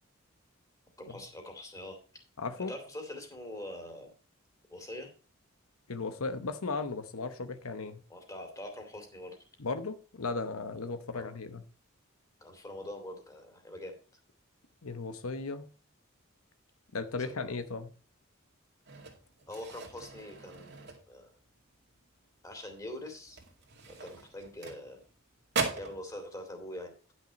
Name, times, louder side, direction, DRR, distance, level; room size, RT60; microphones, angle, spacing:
voice 1, 1.0-2.0 2.7-4.1 4.7-5.1 8.1-9.4 11.1-11.3 12.4-14.0 17.2-17.5 19.5-21.3 22.4-23.4 23.9-25.0 25.7-27.1, left 1 dB, 15° left, 2.5 m, -44 dB
voice 2, 2.4-2.7 5.9-8.0 9.6-11.6 14.8-15.7 16.9-17.9, left 3 dB, 85° left, 1.0 m, -36 dB
sound 1, 18.9-21.5 21.8-22.1 22.5-22.6 23.2-25.2 25.5-26.0, right 4 dB, 55° right, 2.2 m, -39 dB
10.5 x 6.3 x 5.2 m
head